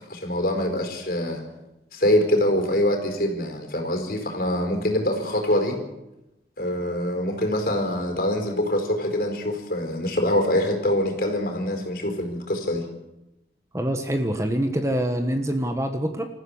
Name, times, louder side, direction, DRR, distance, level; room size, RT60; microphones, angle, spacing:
voice 1, 0.1-1.4 1.9-5.8 6.6-12.9, left 1 dB, 55° left, 4 dB, 4.7 m, -24 dB
voice 2, 13.7-16.3, right 1 dB, 15° right, 6 dB, 1.3 m, -25 dB
27.0 x 14.5 x 7.3 m, 0.94 s
head